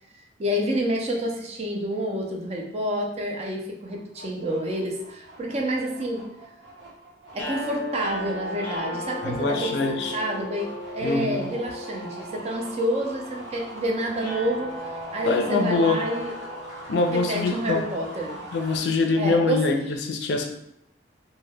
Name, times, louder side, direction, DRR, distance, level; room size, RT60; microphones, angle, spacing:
voice 1, 0.4-6.3 7.3-14.7 15.1-16.3 17.1-18.4 19.2-19.8, right 1 dB, 35° right, 1 dB, 0.4 m, -28 dB
sound 1, 3.8-18.8, right 1 dB, 75° right, 1.0 m, -43 dB
sound 2, 7.3-17.5, left 1 dB, 10° left, 0.6 m, -37 dB
voice 2, 9.2-10.2 11.0-11.5 15.3-16.0 16.9-17.9 18.5-20.5, left 3 dB, 65° left, 4 dB, 0.4 m, -24 dB
2.2 x 2.1 x 3.3 m, 0.76 s
head